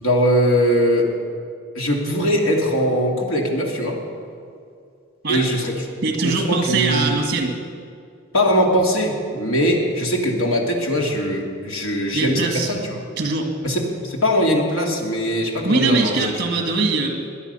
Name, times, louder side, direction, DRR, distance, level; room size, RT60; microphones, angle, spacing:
voice 1, 0.0-1.1 1.7-4.0 5.3-5.7 6.2-7.2 8.3-13.0 13.6-16.3, equal, 85° left, 0 dB, 2.5 m, -21 dB
voice 2, 6.0-7.6 12.1-12.7 13.2-13.5 15.7-17.1, right 3 dB, 50° right, 3 dB, 1.9 m, -21 dB
21.5 x 9.9 x 5.6 m, 2.4 s
head